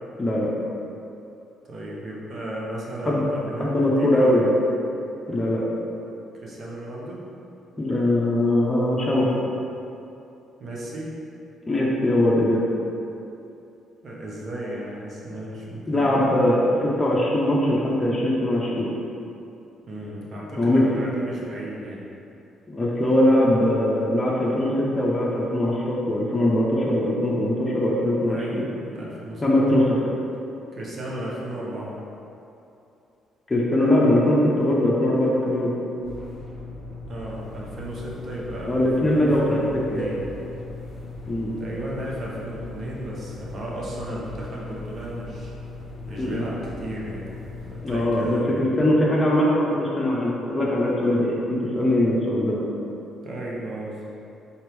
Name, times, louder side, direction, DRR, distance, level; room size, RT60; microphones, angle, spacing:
voice 1, 0.2-0.5 3.1-3.2 3.6-4.5 5.3-5.6 7.8-9.2 11.7-12.6 15.9-18.9 20.6-20.8 22.7-28.6 29.4-30.0 33.5-35.7 38.6-39.6 39.9-40.0 41.3-41.5 46.2-46.4 47.8-52.6, left 1 dB, 20° left, -5 dB, 0.7 m, -21 dB
voice 2, 1.6-4.3 6.4-7.2 9.0-9.6 10.6-11.2 14.0-16.1 19.9-22.0 28.3-29.4 30.7-32.0 37.1-40.2 41.6-45.5 46.1-47.3 47.7-48.7 53.2-54.0, right 1 dB, 50° right, -4 dB, 0.9 m, -34 dB
sound 1, 36.0-48.4, left 3 dB, 45° left, 1.0 m, -38 dB
4.2 x 2.9 x 3.4 m, 2.8 s
supercardioid pair, 70°, 0 cm